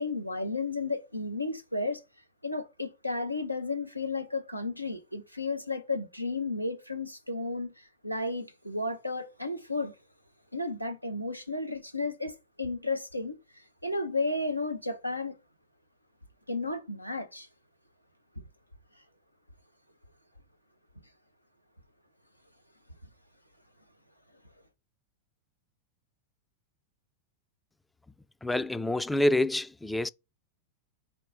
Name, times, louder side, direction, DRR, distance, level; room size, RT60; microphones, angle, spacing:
voice 1, 0.0-2.0 2.4-9.9 10.5-15.4 16.5-17.5 18.4-18.5, left 3 dB, 90° left, 0.7 m, -33 dB
voice 2, 28.4-30.1, left 1 dB, 5° left, 0.3 m, -27 dB
4.5 x 3.1 x 3.8 m
figure-of-eight pair, 90°, 0 cm